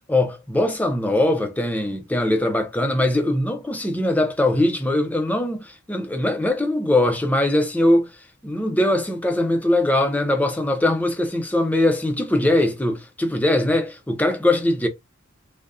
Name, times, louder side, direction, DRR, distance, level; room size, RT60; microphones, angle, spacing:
voice 1, 0.1-8.1 8.4-14.9, left 1 dB, 10° left, 0.6 m, -21 dB
3.5 x 2.2 x 2.6 m
head